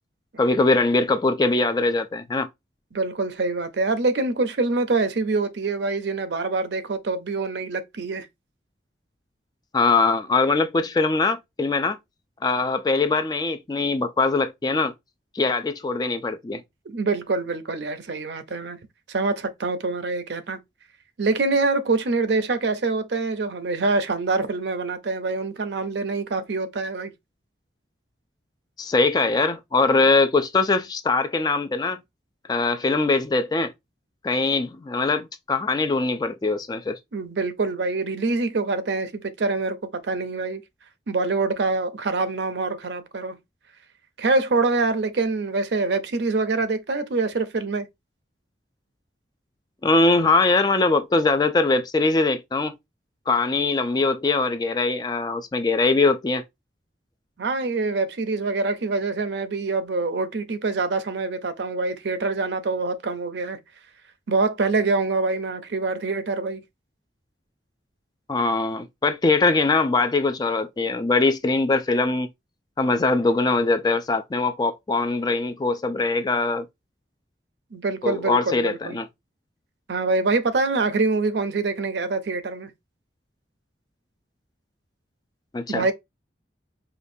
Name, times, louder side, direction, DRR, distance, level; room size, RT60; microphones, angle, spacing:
voice 1, 0.4-2.5 9.7-12.0 12.4-14.9 15.3-16.6 28.8-32.0 32.5-33.7 34.2-37.0 49.8-52.8 53.3-56.4 68.3-72.3 72.8-76.7 78.0-79.1 85.5-85.9, left 3 dB, 20° left, 0.3 m, -22 dB
voice 2, 2.9-8.3 16.9-18.8 19.1-20.6 21.2-27.1 37.1-39.8 40.0-40.6 41.1-43.4 44.2-47.9 57.4-63.6 64.3-66.6 77.7-79.0 79.9-82.7 85.7-85.9, right 3 dB, 70° right, 0.6 m, -25 dB
5.0 x 2.2 x 2.6 m
head